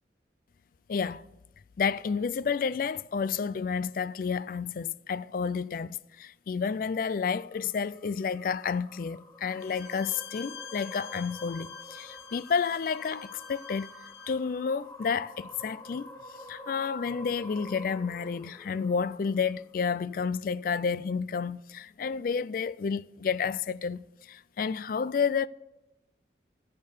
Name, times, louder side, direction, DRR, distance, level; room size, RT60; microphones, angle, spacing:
voice 1, 0.9-1.2 1.8-13.9 14.3-25.5, left 6 dB, 50° left, 0.3 m, -30 dB
sound 1, 7.4-19.9, left 1 dB, 15° left, 1.0 m, -48 dB
Bowed string instrument, 9.6-14.4, left 7 dB, 70° left, 1.0 m, -47 dB
15.0 x 6.7 x 6.6 m
head